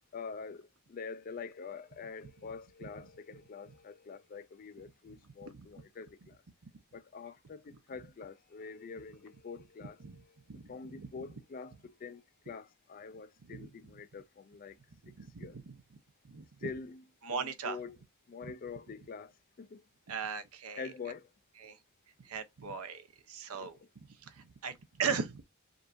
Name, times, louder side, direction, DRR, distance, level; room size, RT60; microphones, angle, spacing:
voice 1, 0.1-6.4 6.9-10.2 10.7-14.8 15.4-15.6 16.6-17.0 17.3-18.0 18.3-19.3 19.6-19.8 20.8-21.3 23.5-23.7, left 5 dB, 40° left, 0.3 m, -45 dB
voice 2, 10.5-11.1 13.5-13.7 15.0-15.8 16.2-16.7 17.2-17.8 18.4-18.5 20.1-20.9 21.6-21.8 22.2-23.8 24.2-25.4, right 6 dB, 75° right, 0.7 m, -38 dB
5.1 x 2.6 x 2.5 m
head